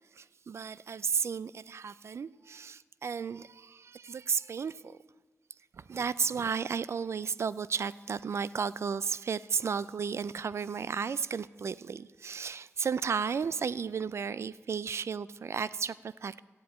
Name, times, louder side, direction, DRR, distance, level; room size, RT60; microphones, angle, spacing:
voice 1, 0.1-5.0 5.7-16.4, right 6 dB, 55° right, 0.3 m, -33 dB
13.5 x 7.9 x 9.0 m
wide cardioid pair, 125°, 5 cm